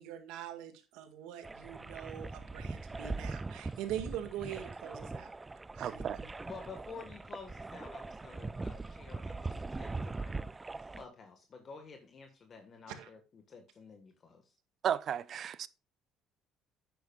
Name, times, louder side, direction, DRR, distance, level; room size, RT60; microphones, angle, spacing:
voice 1, 0.0-5.3 5.7-6.3 13.0-13.1, right 10 dB, 85° right, 1.9 m, -43 dB
sound 1, 1.4-11.0, right 3 dB, 15° right, 0.3 m, -41 dB
voice 2, 5.8-6.2 14.8-15.7, right 9 dB, 50° right, 0.6 m, -34 dB
voice 3, 6.4-10.5 11.0-14.5, left 5 dB, 40° left, 1.6 m, -51 dB
11.0 x 9.2 x 2.4 m
cardioid pair, 105°, 0 cm